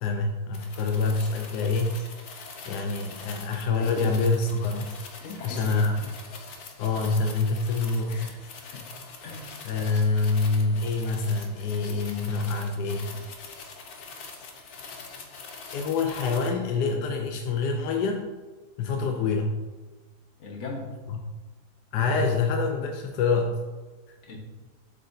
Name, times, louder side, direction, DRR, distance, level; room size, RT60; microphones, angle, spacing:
voice 1, 0.0-2.0 2.7-4.9 5.4-6.0 6.8-8.4 9.6-13.2 15.7-18.2 18.8-19.6 21.1-21.2 21.9-23.6, left 4 dB, 80° left, 3 dB, 1.2 m, -26 dB
sound 1, 0.5-16.5, left 4 dB, 65° left, 1.3 m, -43 dB
voice 2, 3.8-4.1 5.2-5.8 8.1-8.4 8.7-8.9 9.2-9.6 20.4-20.9 24.2-24.4, left 3 dB, 45° left, -1 dB, 1.5 m, -39 dB
7.5 x 6.9 x 2.7 m, 1.3 s
omnidirectional pair, 1.7 m